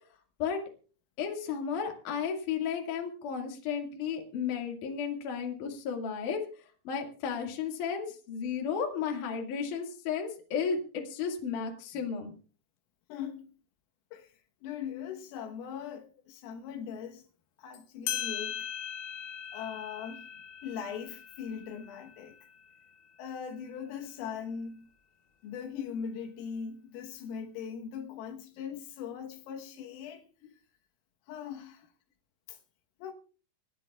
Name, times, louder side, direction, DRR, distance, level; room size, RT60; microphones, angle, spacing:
voice 1, 1.2-6.4 6.8-12.3, left 6 dB, 50° left, 3.0 m, -33 dB
voice 2, 13.1-13.5 14.1-14.3 14.6-17.2 17.6-18.7 19.5-20.3 20.6-22.4 23.2-24.9 25.4-30.3 31.3-31.9 32.5-32.6 33.0-33.1, left 7 dB, 90° left, 4.0 m, -40 dB
sound 1, 17.7-17.8 18.1-23.2, left 10 dB, 65° left, 2.8 m, -40 dB
28.5 x 10.0 x 2.4 m
omnidirectional pair, 5.8 m